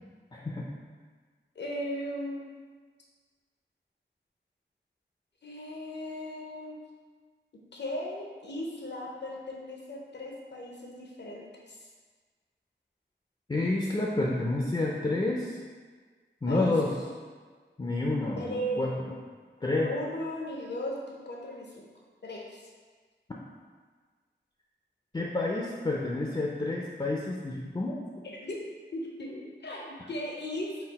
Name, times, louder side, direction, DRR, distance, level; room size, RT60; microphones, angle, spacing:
voice 1, 0.3-0.7 13.5-15.6 16.4-16.9 17.8-18.9 19.6-19.9 25.1-28.0, left 2 dB, 25° left, -3 dB, 0.4 m, -29 dB
voice 2, 1.6-2.4 5.4-6.8 7.7-11.8 16.5-17.1 18.4-19.2 19.8-21.9 22.2-22.6 28.2-28.6 28.9-30.8, equal, 65° left, -2 dB, 0.6 m, -37 dB
4.0 x 2.4 x 4.0 m, 1.5 s
wide cardioid pair, 55°, 20 cm